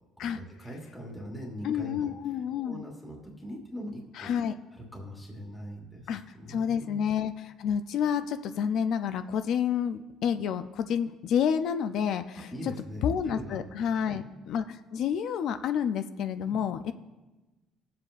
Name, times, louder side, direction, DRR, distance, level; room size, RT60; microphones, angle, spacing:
voice 1, 0.2-2.1 2.6-4.3 4.7-7.0 12.5-13.6 13.9-14.2 16.4-16.6, equal, 5° left, -2 dB, 1.3 m, -42 dB
voice 2, 1.6-2.8 4.2-4.5 6.1-6.2 6.5-12.7 13.0-16.9, left 8 dB, 50° left, 10 dB, 0.4 m, -29 dB
20.5 x 7.5 x 2.4 m, 1.1 s
cardioid pair, 175°, 0 cm